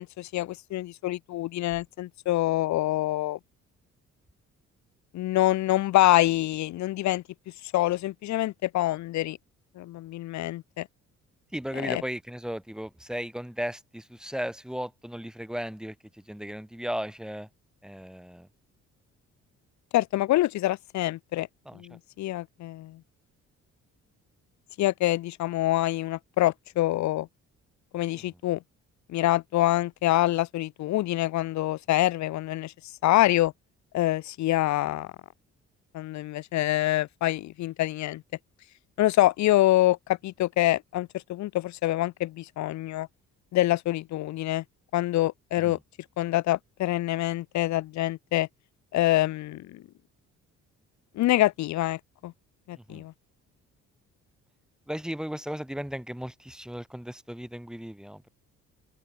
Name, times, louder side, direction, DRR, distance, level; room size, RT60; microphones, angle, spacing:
voice 1, 0.0-3.4 5.1-7.2 7.7-9.4 9.8-10.9 11.8-12.0 19.9-21.5 21.7-23.0 24.8-27.3 27.9-28.6 29.1-32.7 33.0-33.5 33.9-35.1 35.9-38.2 39.0-43.1 43.5-44.6 44.9-45.8 46.2-48.5 48.9-49.8 51.1-52.3 52.7-53.1, left 15 dB, 65° left, 0.6 m, -26 dB
voice 2, 11.5-17.5 17.8-18.5 21.6-22.0 28.2-28.4 45.6-45.8 52.8-53.1 54.9-58.3, equal, ahead, 2.9 m, -36 dB
open air
cardioid pair, 90°, 30 cm